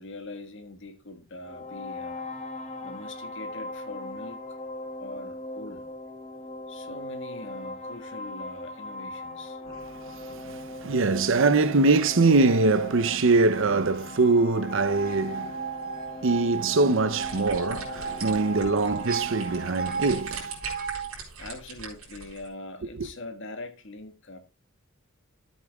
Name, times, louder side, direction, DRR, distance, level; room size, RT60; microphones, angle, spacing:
voice 1, 0.0-2.3 2.8-4.4 5.0-5.9 6.7-9.6 21.4-24.4, left 2 dB, 60° left, 1.6 m, -42 dB
sound 1, 1.4-20.2, left 2 dB, 30° left, 1.4 m, -40 dB
voice 2, 10.1-15.7 16.2-20.5 23.0-23.1, right 3 dB, 60° right, 0.7 m, -23 dB
sound 2, 14.7-21.1, right 7 dB, 40° right, 1.8 m, -35 dB
sound 3, 16.7-22.5, right 5 dB, 80° right, 4.1 m, -41 dB
13.0 x 8.3 x 2.3 m
head